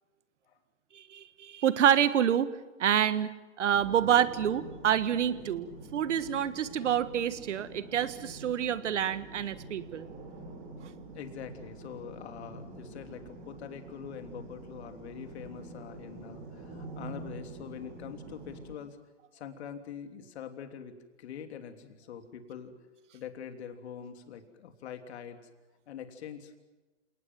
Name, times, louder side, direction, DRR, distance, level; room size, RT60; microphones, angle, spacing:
voice 1, 0.9-5.7 5.9-10.1, right 9 dB, 70° right, 13 dB, 1.7 m, -27 dB
sound 1, 3.7-18.7, right 3 dB, 35° right, 7.1 m, -46 dB
voice 2, 11.1-19.0 19.3-22.7 23.1-25.4 25.9-26.6, left 8 dB, 60° left, 6 dB, 3.3 m, -44 dB
28.5 x 19.0 x 7.7 m, 1.2 s
hypercardioid pair, 135°, 37 cm